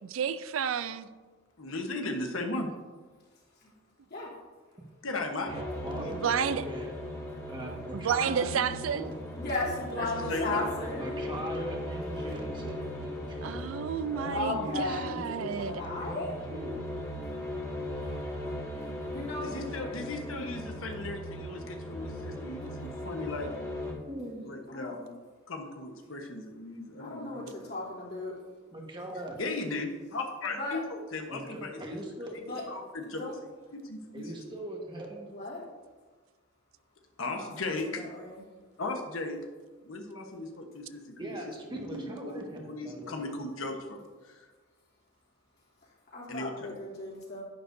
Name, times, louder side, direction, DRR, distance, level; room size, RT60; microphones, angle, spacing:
voice 1, 0.1-1.1 6.1-6.7 7.9-9.1 13.4-15.8, right 7 dB, 75° right, 0.4 m, -31 dB
voice 2, 1.6-2.7 5.0-5.5 5.9-6.4 10.0-10.6 19.4-23.5 24.4-25.1 25.5-27.5 29.4-32.0 32.7-33.3 33.8-34.3 37.2-38.0 38.8-39.4 39.8-41.0 41.7-44.4 46.3-46.8, left 2 dB, 80° left, 1.1 m, -37 dB
sound 1, 5.5-23.9, left 1 dB, 20° left, 1.8 m, -38 dB
voice 3, 5.5-6.2 6.6-6.9 7.4-8.5 8.9-9.2 11.0-13.6 14.1-16.8 24.1-24.5 28.7-29.4 31.3-32.4 34.1-35.3 41.2-43.1, right 1 dB, 25° right, 1.4 m, -40 dB
voice 4, 8.2-8.7 9.4-11.2 14.3-16.3 19.1-20.1 24.7-24.9 27.0-28.4 30.5-30.8 32.4-32.6 33.0-33.3 35.3-35.6 37.3-38.4 46.1-47.4, left 2 dB, 55° left, 3.0 m, -36 dB
10.5 x 9.6 x 2.7 m
head